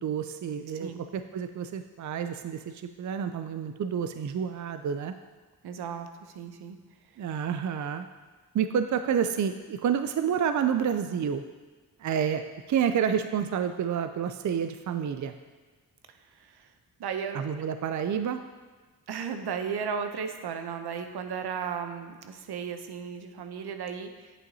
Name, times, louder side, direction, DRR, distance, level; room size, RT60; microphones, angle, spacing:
voice 1, 0.0-5.1 7.2-8.1 8.5-11.4 12.0-12.4 12.7-15.3 17.3-18.4, right 8 dB, 50° right, 9 dB, 0.5 m, -29 dB
voice 2, 0.7-1.1 5.6-6.8 16.4-16.7 17.0-17.5 19.1-24.3, right 6 dB, 75° right, 7 dB, 0.8 m, -35 dB
8.7 x 8.1 x 2.8 m, 1.3 s
cardioid pair, 75°, 39 cm